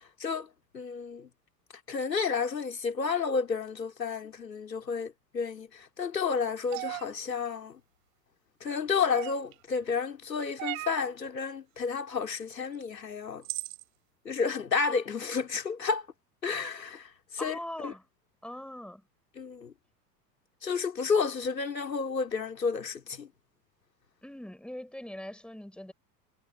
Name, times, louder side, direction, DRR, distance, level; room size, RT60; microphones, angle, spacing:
voice 1, 0.7-1.3 1.9-7.8 8.6-13.4 14.3-16.0 16.4-17.1 17.4-17.6 17.8-17.9 19.4-19.7 20.6-23.3, left 5 dB, 80° left, 3.7 m, -31 dB
sound 1, 6.7-7.0 9.1-9.5 10.6-11.0 12.7-12.8 13.4-13.8, right 21 dB, 55° right, 2.8 m, -36 dB
voice 2, 17.4-18.1 18.4-19.0 24.2-25.9, left 1 dB, ahead, 6.2 m, -41 dB
figure-of-eight pair, 80°, 50 cm